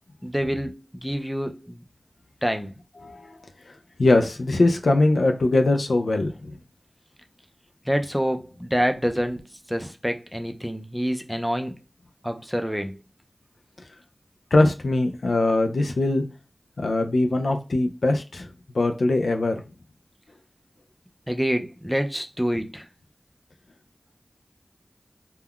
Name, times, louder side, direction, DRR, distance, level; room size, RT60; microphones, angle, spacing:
voice 1, 0.2-1.8 2.4-2.7 7.9-9.4 9.7-11.7 12.2-13.0 21.3-22.9, equal, ahead, 0.4 m, -27 dB
voice 2, 3.0-3.4 4.0-6.6 14.5-16.2 16.8-19.6, left 2 dB, 85° left, 0.3 m, -21 dB
2.3 x 2.2 x 3.5 m
wide cardioid pair, 50°, 0 cm